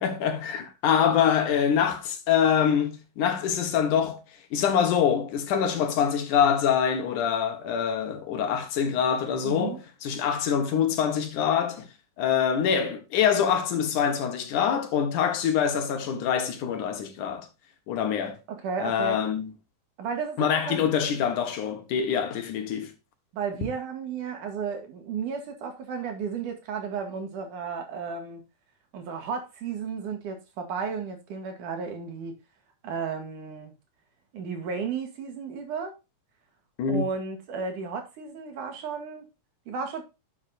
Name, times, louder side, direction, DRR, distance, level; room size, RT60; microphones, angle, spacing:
voice 1, 0.0-4.2 4.5-11.9 12.2-17.5 17.9-18.4 18.8-19.5 20.4-22.9 36.8-37.0, left 8 dB, 80° left, 3.0 m, -25 dB
voice 2, 9.4-9.8 18.5-19.2 20.0-20.8 23.3-28.4 28.9-32.3 32.8-33.7 34.3-35.9 36.9-39.3 39.7-40.0, right 5 dB, 90° right, 3.7 m, -33 dB
11.0 x 7.4 x 2.7 m
omnidirectional pair, 3.5 m